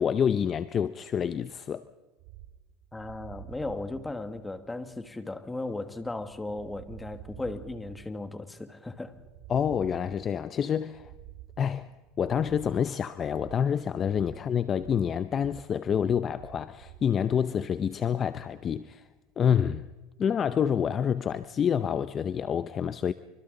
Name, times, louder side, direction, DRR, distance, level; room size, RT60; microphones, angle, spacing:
voice 1, 0.0-1.9 9.5-11.1 11.6-11.9 12.2-19.1 19.4-19.9 20.2-23.1, left 8 dB, 30° left, 0.6 m, -27 dB
sound 1, 2.2-17.1, right 13 dB, 70° right, 2.1 m, -50 dB
voice 2, 2.9-9.1, left 2 dB, 10° left, 1.5 m, -36 dB
27.0 x 24.5 x 3.9 m
supercardioid pair, 130°, 0 cm